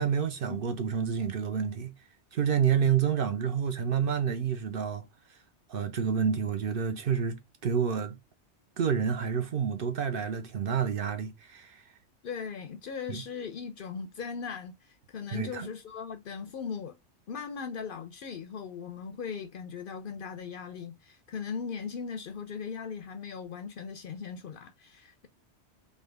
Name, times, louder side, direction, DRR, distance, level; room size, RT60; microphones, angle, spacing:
voice 1, 0.0-1.9 2.3-5.0 5.7-8.1 8.8-11.8 13.1-13.2 15.3-15.7, right 7 dB, 60° right, 0.7 m, -29 dB
voice 2, 12.2-17.0 17.3-25.3, left 6 dB, 60° left, 0.6 m, -38 dB
3.6 x 2.7 x 3.3 m
omnidirectional pair, 1.2 m